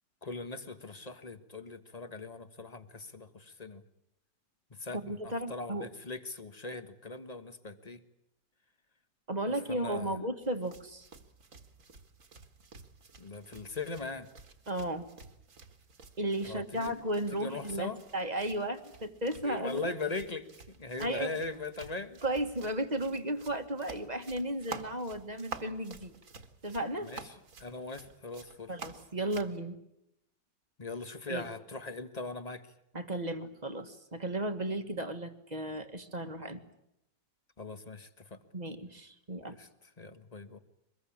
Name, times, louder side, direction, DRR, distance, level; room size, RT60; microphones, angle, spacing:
voice 1, 0.2-3.8 4.7-8.0 9.7-10.2 13.2-14.3 16.4-16.9 17.3-18.0 19.4-20.5 20.8-22.2 27.0-28.7 30.8-32.6 37.6-38.4 39.5-39.7 40.0-40.6, left 3 dB, 25° left, 10 dB, 1.4 m, -40 dB
voice 2, 4.9-5.9 9.3-11.1 14.7-15.0 16.2-19.9 21.0-21.3 22.2-26.1 26.6-27.1 28.7-29.8 31.3-31.4 32.9-36.6 38.5-39.6, right 1 dB, 25° right, 8 dB, 1.6 m, -34 dB
sound 1, 10.4-29.6, right 4 dB, 45° right, 2.1 m, -50 dB
24.5 x 21.5 x 8.7 m, 0.82 s
omnidirectional pair, 1.9 m